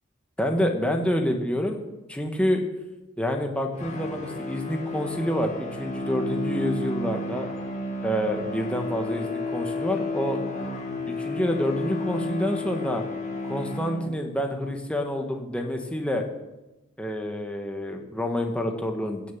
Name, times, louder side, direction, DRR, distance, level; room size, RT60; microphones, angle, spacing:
voice 1, 0.4-1.8 2.1-2.6 3.2-7.5 8.0-10.4 11.1-13.0 13.4-16.2 17.0-19.3, equal, 5° left, 3 dB, 1.2 m, -27 dB
sound 1, 3.7-14.5, left 2 dB, 35° left, 1.9 m, -32 dB
16.0 x 7.0 x 7.1 m, 1.0 s
head